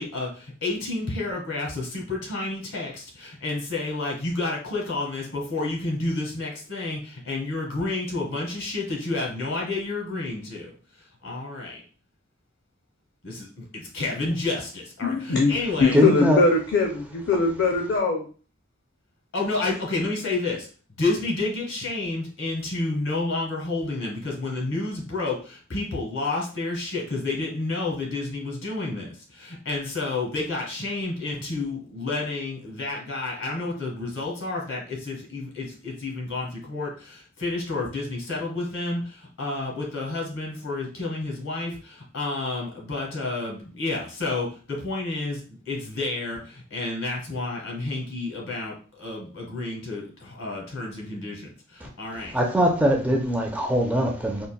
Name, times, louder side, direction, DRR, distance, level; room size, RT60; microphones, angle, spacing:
voice 1, 0.0-11.8 13.2-16.0 19.3-20.7 21.0-52.3, left 2 dB, 80° left, 1.4 m, -30 dB
voice 2, 15.0-15.5 15.8-18.3, left 3 dB, 55° left, 0.4 m, -21 dB
voice 3, 15.9-16.4 52.3-54.5, equal, 5° right, 0.4 m, -21 dB
3.8 x 2.2 x 2.2 m
head